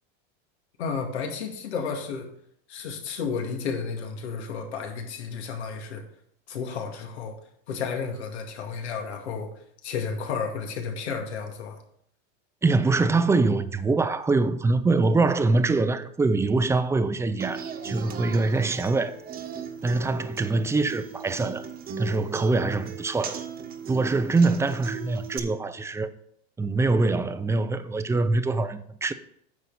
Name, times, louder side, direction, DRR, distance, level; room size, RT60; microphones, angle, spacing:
voice 1, 0.8-2.3 2.7-6.0 6.5-7.4 7.7-9.5 9.8-11.8, left 5 dB, 85° left, 2.2 m, -32 dB
voice 2, 12.6-19.2 19.8-21.7 22.0-23.4 23.9-26.1 26.6-29.1, right 3 dB, 10° right, 0.5 m, -24 dB
Human voice / Acoustic guitar, 17.4-25.4, right 6 dB, 30° right, 1.2 m, -38 dB
9.7 x 6.9 x 4.1 m
supercardioid pair, 120°, 32 cm